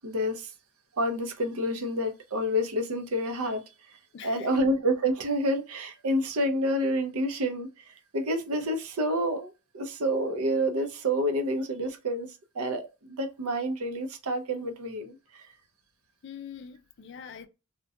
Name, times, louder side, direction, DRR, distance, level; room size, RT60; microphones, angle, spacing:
voice 1, 0.0-0.5 1.0-12.3 12.5-15.5, equal, 75° right, 0.5 m, -29 dB
voice 2, 4.1-4.5 16.2-17.5, left 7 dB, 50° left, 0.3 m, -43 dB
2.3 x 2.1 x 2.6 m
head